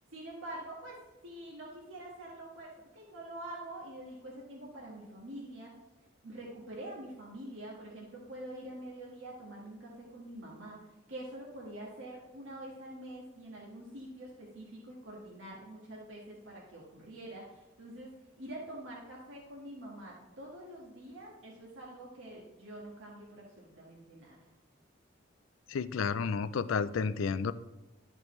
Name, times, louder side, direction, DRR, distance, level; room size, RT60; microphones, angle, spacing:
voice 1, 0.0-5.7 6.2-10.8 11.1-24.4, right 1 dB, 75° right, -4 dB, 1.6 m, -46 dB
voice 2, 25.7-27.5, left 5 dB, 85° left, 14 dB, 0.4 m, -31 dB
12.5 x 5.2 x 3.2 m, 1.1 s
head